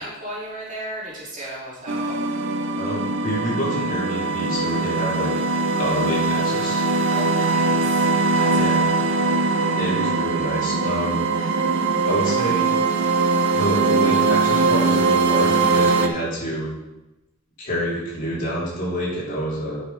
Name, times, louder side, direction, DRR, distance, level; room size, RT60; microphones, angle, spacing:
voice 1, 0.0-2.2 7.1-9.1 9.3-9.8, right 1 dB, 40° right, -6 dB, 2.8 m, -35 dB
sound 1, 1.9-16.1, right 3 dB, 65° right, 0.7 m, -21 dB
voice 2, 2.8-5.3 5.8-6.8 8.5-8.8 9.8-11.2 12.1-12.8 13.5-16.7 17.6-19.8, equal, 45° left, -6 dB, 3.0 m, -27 dB
9.5 x 5.9 x 4.2 m, 0.99 s
head